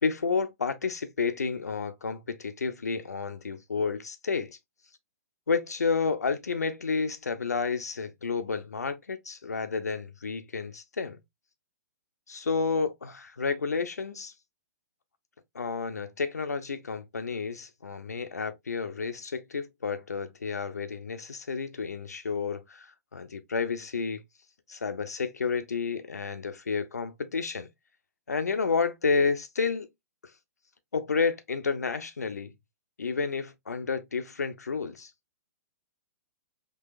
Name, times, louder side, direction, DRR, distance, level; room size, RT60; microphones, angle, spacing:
voice 1, 0.0-4.6 5.5-11.2 12.3-14.3 15.5-24.2 24.7-27.7 28.3-29.9 30.9-32.5 33.0-35.1, left 5 dB, 85° left, 0.6 m, -30 dB
3.9 x 2.8 x 2.5 m
hypercardioid pair, 120°, 9 cm